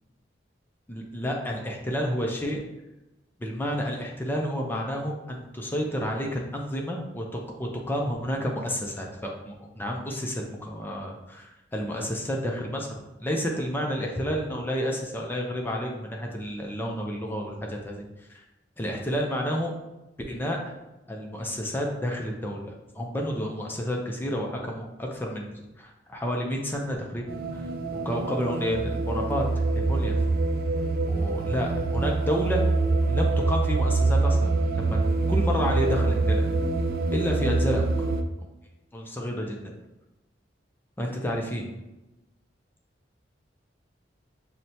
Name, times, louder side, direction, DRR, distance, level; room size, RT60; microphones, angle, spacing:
voice 1, 0.9-2.6 3.4-7.3 7.6-12.9 13.2-18.0 18.3-18.4 18.8-19.7 20.3-20.6 21.1-25.5 25.8-27.3 27.5-27.6 27.9-29.4 29.7-30.1 31.1-32.6 33.1-35.0 35.3-36.5 37.1-38.1 38.9-39.6 41.0-41.7, equal, 10° left, 0 dB, 0.4 m, -30 dB
sound 1, 27.3-38.2, right 3 dB, 55° right, 0.3 m, -25 dB
5.9 x 2.1 x 2.7 m, 0.99 s
head